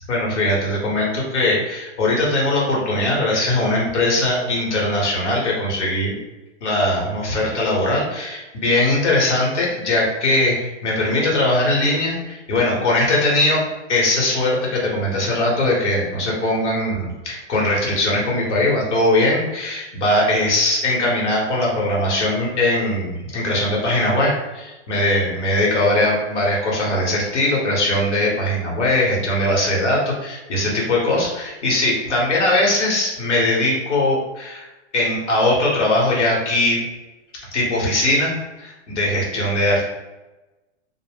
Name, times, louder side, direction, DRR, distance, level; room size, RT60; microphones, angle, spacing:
voice 1, 0.1-6.2 6.6-10.5 10.8-13.6 13.9-34.7 34.9-36.8 37.5-39.8, left 1 dB, 80° left, -3 dB, 1.0 m, -20 dB
2.0 x 2.0 x 3.3 m, 1.1 s
hypercardioid pair, 115°, 35 cm